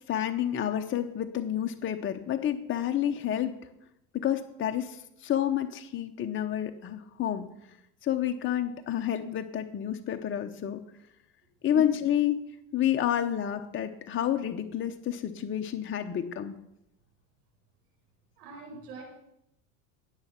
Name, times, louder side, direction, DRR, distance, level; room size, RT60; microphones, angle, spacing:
voice 1, 0.1-3.5 4.1-7.5 8.0-10.8 11.6-12.4 12.7-16.6, left 10 dB, 25° left, 6 dB, 0.9 m, -29 dB
voice 2, 18.4-19.0, right 5 dB, 85° right, -1 dB, 5.1 m, -41 dB
18.5 x 6.7 x 6.0 m, 0.81 s
hypercardioid pair, 100°, 46 cm